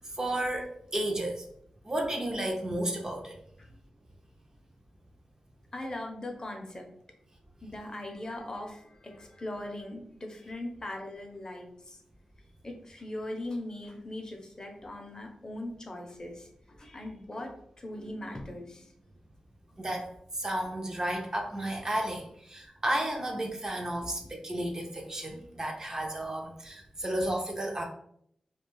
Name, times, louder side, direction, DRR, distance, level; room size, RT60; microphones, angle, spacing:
voice 1, 0.0-1.5 1.8-3.4 19.8-27.8, right 1 dB, 30° right, 1 dB, 0.4 m, -33 dB
voice 2, 5.7-6.9 7.6-12.0 12.6-18.9 19.7-19.8 24.0-24.1, left 1 dB, 35° left, 2 dB, 0.5 m, -40 dB
2.3 x 2.2 x 3.0 m, 0.69 s
wide cardioid pair, 85°, 2 cm